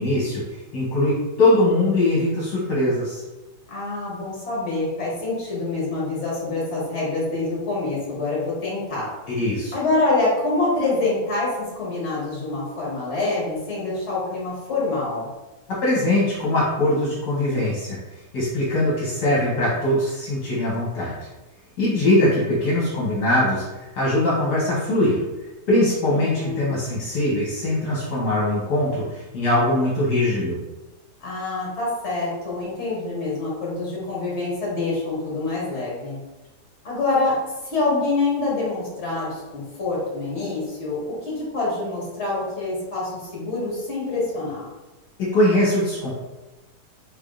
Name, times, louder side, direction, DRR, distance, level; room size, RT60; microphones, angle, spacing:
voice 1, 0.0-3.2 9.3-9.7 15.8-18.0 18.3-21.3 21.8-25.2 25.7-30.6 45.2-46.1, left 1 dB, 70° left, -7 dB, 1.5 m, -21 dB
voice 2, 3.7-9.1 9.7-15.3 26.1-26.8 31.2-36.2 36.8-37.4 37.7-44.7, left 3 dB, 40° left, -6 dB, 1.6 m, -26 dB
3.7 x 3.4 x 2.4 m, 1.1 s
omnidirectional pair, 1.9 m